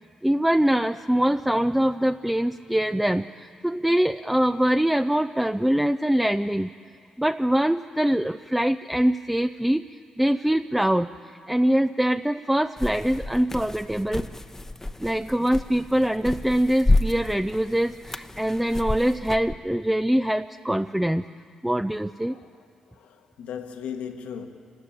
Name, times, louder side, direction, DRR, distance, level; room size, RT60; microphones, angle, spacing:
voice 1, 0.2-6.7 7.2-11.1 11.5-14.3 15.0-21.3 21.6-22.3, right 1 dB, 5° right, 0.5 m, -23 dB
sound 1, 12.8-19.5, left 2 dB, 20° left, 0.9 m, -29 dB
voice 2, 22.9-24.5, left 8 dB, 85° left, 1.6 m, -37 dB
26.5 x 13.0 x 8.7 m
supercardioid pair, 60°, 2 cm